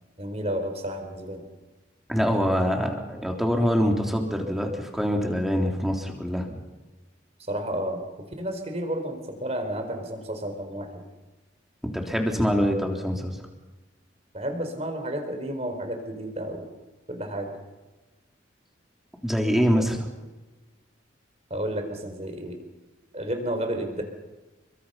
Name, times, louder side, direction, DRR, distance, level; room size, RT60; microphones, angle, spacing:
voice 1, 0.2-1.4 7.5-8.0 8.4-11.0 14.3-16.7 17.1-17.5 21.5-22.6 23.1-24.0, right 1 dB, 35° right, 6 dB, 4.4 m, -31 dB
voice 2, 2.1-6.6 11.9-13.4 19.2-20.1, equal, ahead, 1 dB, 3.5 m, -24 dB
30.0 x 24.0 x 5.8 m, 1.2 s
head